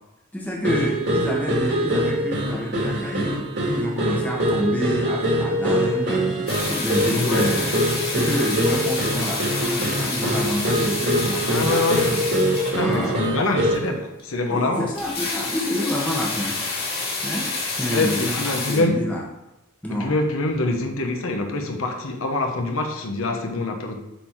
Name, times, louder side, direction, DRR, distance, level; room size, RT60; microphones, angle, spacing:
voice 1, 0.3-7.8 8.1-12.2 12.8-13.2 14.5-16.6 17.2-17.5 17.8-19.2 19.8-20.2, equal, 5° left, 1.0 m, -28 dB
sound 1, 0.6-14.0, right 1 dB, 55° right, 1.9 m, -24 dB
sound 2, 6.5-13.2 13.8-13.9 14.2-14.3 14.5-14.6 14.8-18.8, left 3 dB, 45° left, 2.4 m, -29 dB
voice 2, 7.1-7.5 11.4-12.1 12.7-15.0 17.9-19.1 19.9-24.0, left 2 dB, 65° left, 1.0 m, -25 dB
8.3 x 4.0 x 4.6 m
head